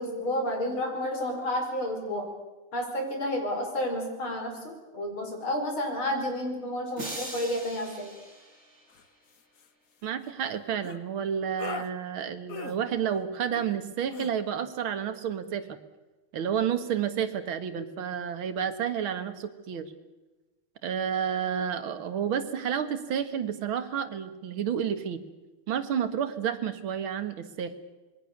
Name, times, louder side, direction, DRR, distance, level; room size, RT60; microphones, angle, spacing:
voice 1, 0.0-2.3 2.7-8.1, left 1 dB, 70° left, 3 dB, 5.7 m, -31 dB
sound 1, 7.0-9.2, right 1 dB, 30° right, 5.1 m, -41 dB
sound 2, 8.9-9.0 9.3-9.7 10.8-11.0 11.6-11.9 12.5-12.8 13.5-13.8 14.1-14.3, left 6 dB, 50° left, 1.3 m, -39 dB
voice 2, 10.0-15.8 16.3-19.9 20.8-25.2 25.7-27.7, right 8 dB, 70° right, 9 dB, 2.3 m, -30 dB
26.5 x 22.0 x 6.7 m, 1.2 s
omnidirectional pair, 2.3 m